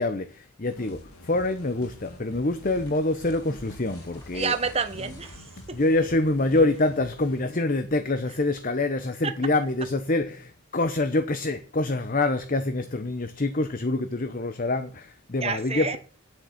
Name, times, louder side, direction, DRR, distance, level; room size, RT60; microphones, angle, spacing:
voice 1, 0.0-4.5 5.7-16.0, left 2 dB, 40° left, 0.8 m, -26 dB
sound 1, 0.7-7.4, left 1 dB, 80° left, 1.9 m, -47 dB
sound 2, 1.7-6.5, left 1 dB, 15° left, 4.4 m, -51 dB
voice 2, 4.3-5.8 15.4-16.0, right 5 dB, 25° right, 1.1 m, -29 dB
9.4 x 8.0 x 7.2 m
head